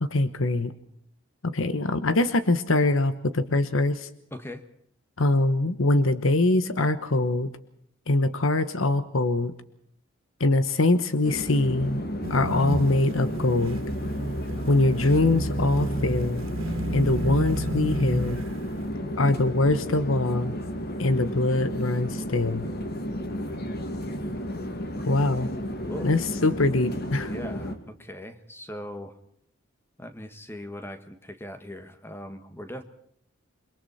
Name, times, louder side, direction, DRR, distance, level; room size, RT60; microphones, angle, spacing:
voice 1, 0.0-0.7 1.4-4.1 5.2-7.5 8.1-9.5 10.4-13.8 14.7-16.4 16.9-18.4 19.2-20.5 21.0-22.7 25.1-25.5 26.0-27.3, left 2 dB, 75° left, 12 dB, 1.2 m, -23 dB
voice 2, 4.3-4.6 25.9-26.1 27.2-29.2 30.0-32.8, left 1 dB, 10° left, 9 dB, 1.5 m, -39 dB
sound 1, 11.2-27.8, equal, 50° left, 2.3 m, -33 dB
sound 2, 12.2-18.7, right 1 dB, 75° right, 2.5 m, -31 dB
28.5 x 22.5 x 4.2 m, 0.67 s
head